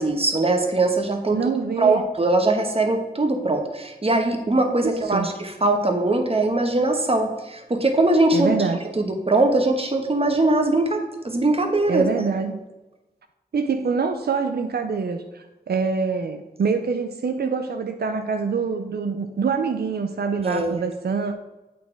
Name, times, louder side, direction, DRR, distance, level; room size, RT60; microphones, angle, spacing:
voice 1, 0.0-1.4 1.8-8.5 9.0-12.0 20.4-20.8, right 2 dB, 35° right, 4 dB, 1.1 m, -21 dB
voice 2, 1.3-2.0 4.8-5.3 8.3-8.8 11.9-12.6 13.5-21.3, right 5 dB, 90° right, 6 dB, 0.5 m, -25 dB
8.3 x 4.2 x 4.5 m, 1.0 s
wide cardioid pair, 60°, 16 cm